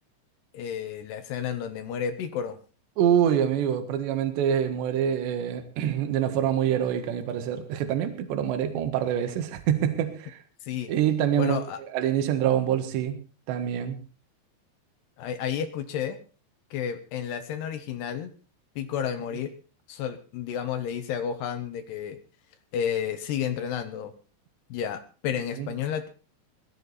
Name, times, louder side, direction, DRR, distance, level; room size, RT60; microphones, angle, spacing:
voice 1, 0.5-2.6 10.6-10.9 11.4-11.8 15.2-16.2 16.7-18.3 18.8-19.5 19.9-22.2 22.7-24.1 24.7-26.1, left 8 dB, 70° left, 10 dB, 3.0 m, -31 dB
voice 2, 3.0-10.4 10.9-11.6 11.9-13.2 13.5-14.0 25.6-25.7, right 9 dB, 75° right, 8 dB, 3.7 m, -25 dB
18.0 x 13.5 x 4.1 m, 0.34 s
omnidirectional pair, 5.3 m